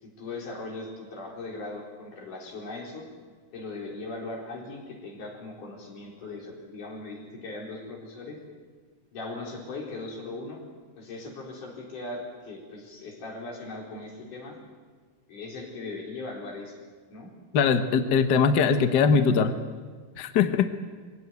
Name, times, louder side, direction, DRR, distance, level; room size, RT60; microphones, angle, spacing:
voice 1, 0.0-3.1 3.5-8.4 9.1-10.6 11.0-14.5 15.3-16.8 17.1-17.3, left 2 dB, 80° left, -1 dB, 5.7 m, -39 dB
voice 2, 17.5-19.5 20.2-20.7, left 6 dB, 65° left, 9 dB, 1.0 m, -21 dB
22.5 x 17.0 x 9.4 m, 1.5 s
omnidirectional pair, 3.6 m